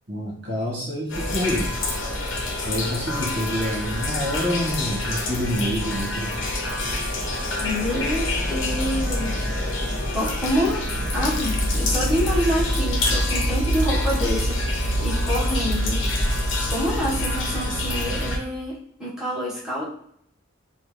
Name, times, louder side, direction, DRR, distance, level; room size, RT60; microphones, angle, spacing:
voice 1, 0.1-1.7 2.6-6.3, equal, 60° right, -4 dB, 1.6 m, -27 dB
sound 1, 1.1-18.4, left 1 dB, 75° left, 0.9 m, -25 dB
voice 2, 7.6-9.5 10.1-10.9 11.1-16.0 16.7-19.9, equal, 5° right, -9 dB, 1.4 m, -27 dB
4.5 x 2.4 x 3.3 m, 0.69 s
head